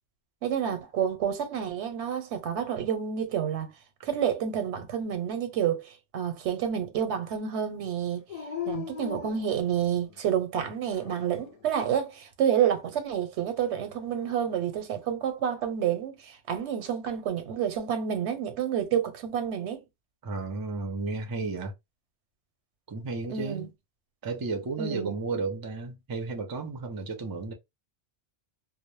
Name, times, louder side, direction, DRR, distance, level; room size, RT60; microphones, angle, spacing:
voice 1, 0.4-3.7 4.0-8.2 8.7-19.8 23.3-23.7 24.8-25.1, right 8 dB, 90° right, 0.9 m, -29 dB
Dog, 8.3-10.2 10.8-11.6 13.9-14.8, left 7 dB, 60° left, 0.4 m, -39 dB
voice 2, 20.2-21.7 22.9-23.7 24.2-27.5, right 3 dB, 35° right, 0.3 m, -33 dB
2.0 x 2.0 x 3.0 m
omnidirectional pair, 1.1 m